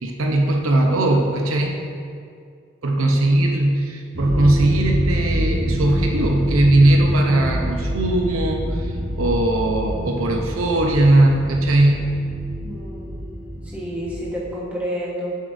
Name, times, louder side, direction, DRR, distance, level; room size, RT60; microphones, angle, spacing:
voice 1, 0.0-1.8 2.8-12.2, right 1 dB, 80° right, 1 dB, 0.8 m, -19 dB
voice 2, 3.0-3.3 12.6-13.1 13.6-15.4, equal, 5° right, -6 dB, 1.3 m, -30 dB
sound 1, 4.1-14.5, equal, 25° right, 0.7 m, -27 dB
8.4 x 7.4 x 2.7 m, 2.3 s
head